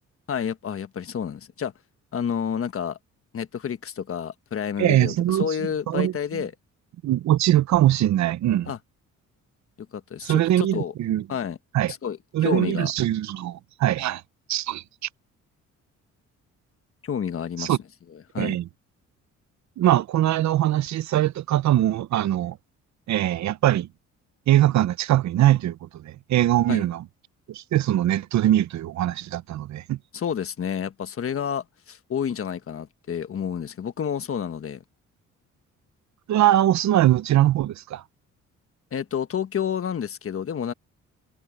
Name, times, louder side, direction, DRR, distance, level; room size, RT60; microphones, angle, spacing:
voice 1, 0.3-1.7 2.1-3.0 3.3-6.5 8.6-8.8 9.9-10.9 11.3-11.6 11.9-12.9 17.0-17.8 18.3-18.6 26.7-26.9 30.1-34.8 38.9-40.7, left 8 dB, 45° left, 1.4 m, -29 dB
voice 2, 4.8-5.6 5.9-6.4 7.0-8.7 10.2-11.2 11.7-11.9 12.3-14.2 14.5-14.8 17.6-17.8 18.4-18.7 19.8-22.6 23.1-23.9 24.5-27.0 27.5-30.0 36.3-38.0, right 13 dB, 65° right, 0.8 m, -22 dB
cardioid pair, 90°, 30 cm